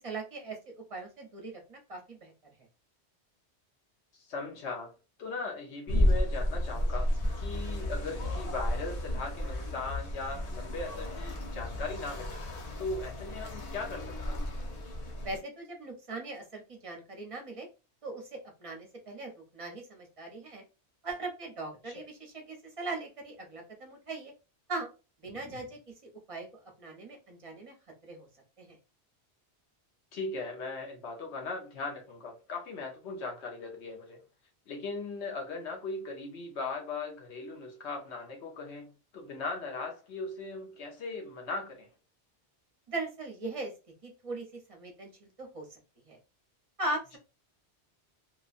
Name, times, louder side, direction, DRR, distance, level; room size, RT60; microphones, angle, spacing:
voice 1, 0.0-2.3 15.2-17.7 18.0-20.6 21.0-24.3 24.7-24.9 25.2-25.8 26.3-26.5 26.8-27.7 28.1-28.3 28.6-28.8 42.9-43.7 44.0-45.6 46.1-46.2 46.8-47.2, right 2 dB, 35° right, 0.8 m, -39 dB
voice 2, 4.1-12.4 12.8-14.4 21.8-21.9 25.3-25.6 30.1-34.2 34.7-41.9, left 3 dB, 75° left, 1.1 m, -39 dB
sound 1, 5.9-15.4, left 1 dB, 40° left, 0.6 m, -32 dB
3.0 x 2.2 x 2.4 m
omnidirectional pair, 1.1 m